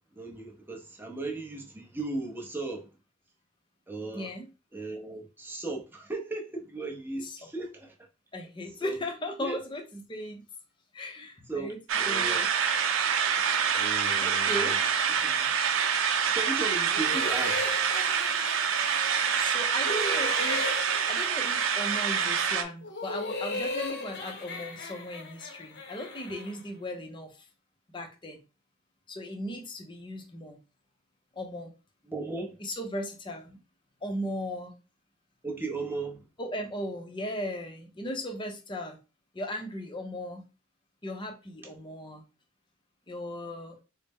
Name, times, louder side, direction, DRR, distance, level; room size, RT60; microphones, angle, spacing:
voice 1, 0.1-2.9 3.9-4.3 4.7-7.9 8.8-9.0 9.4-9.6 11.2-12.5 13.7-14.8 15.1-15.5 16.3-17.8 32.1-32.6 35.4-36.2, right 3 dB, 10° right, 0.7 m, -37 dB
voice 2, 4.1-4.5 7.2-7.4 8.3-10.4 10.9-11.8 12.1-12.5 14.2-14.8 19.4-20.8 21.1-27.3 27.9-28.4 29.1-30.6 31.4-31.7 32.6-33.6 34.0-34.7 36.4-39.0 39.3-40.4 41.0-42.2 43.1-43.8, left 1 dB, 25° left, 0.6 m, -37 dB
sound 1, 11.9-22.6, right 7 dB, 80° right, 0.5 m, -26 dB
sound 2, 16.9-19.5 19.8-22.4 22.8-26.6, left 3 dB, 55° left, 0.7 m, -37 dB
4.0 x 2.1 x 3.5 m
head